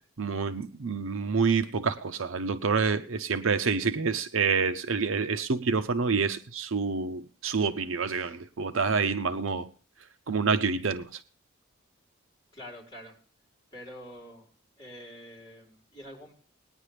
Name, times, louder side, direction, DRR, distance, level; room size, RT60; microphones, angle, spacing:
voice 1, 0.2-9.7 10.3-11.2, right 5 dB, 75° right, 0.7 m, -27 dB
voice 2, 12.5-13.2 13.7-14.5 14.8-16.3, equal, 20° left, 4.4 m, -46 dB
19.5 x 9.8 x 3.3 m
head